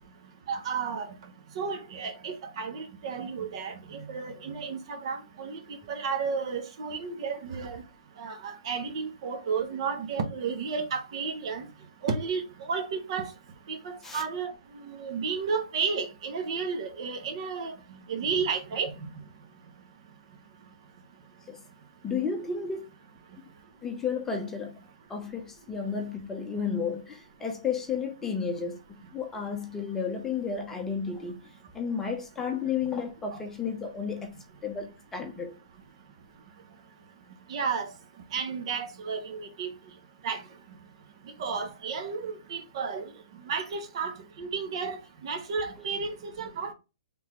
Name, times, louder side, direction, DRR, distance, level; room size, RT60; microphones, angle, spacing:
voice 1, 0.5-5.6 5.9-7.8 8.2-11.7 12.0-13.3 13.7-14.5 14.8-18.9 33.3-33.4 37.5-37.9 38.3-39.7 40.2-40.4 41.4-43.1 43.5-44.1 44.4-45.0 45.2-46.7, right 5 dB, 50° right, 1.0 m, -32 dB
voice 2, 22.0-22.8 23.8-24.7 25.1-28.8 29.1-31.4 31.7-34.3 34.6-35.5, left 6 dB, 10° left, 0.7 m, -32 dB
4.0 x 3.4 x 2.9 m
hypercardioid pair, 150°, 4 cm